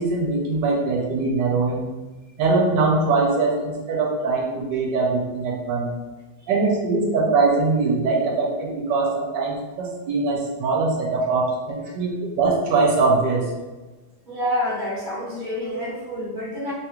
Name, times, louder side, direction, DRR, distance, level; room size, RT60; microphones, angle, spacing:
voice 1, 0.0-1.9 2.4-5.9 6.5-13.4, right 3 dB, 80° right, -1 dB, 1.3 m, -22 dB
voice 2, 14.3-16.7, left 1 dB, 30° right, -6 dB, 1.0 m, -27 dB
3.4 x 2.4 x 2.9 m, 1.2 s
omnidirectional pair, 2.0 m